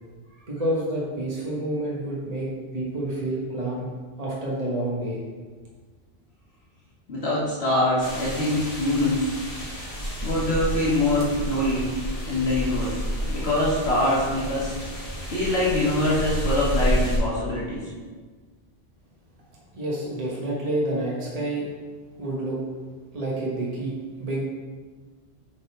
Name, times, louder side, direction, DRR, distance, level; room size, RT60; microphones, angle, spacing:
voice 1, 0.5-3.9 4.2-5.2 19.7-21.6 22.2-22.6 23.1-23.9 24.2-24.4, right 1 dB, 35° right, -5 dB, 1.3 m, -28 dB
voice 2, 7.1-9.3 10.2-11.9 12.3-14.7 15.3-17.9, left 1 dB, 75° left, -7 dB, 1.8 m, -24 dB
sound 1, 8.0-17.2, equal, 35° left, 1.6 m, -30 dB
7.3 x 3.9 x 4.7 m, 1.4 s
omnidirectional pair, 1.1 m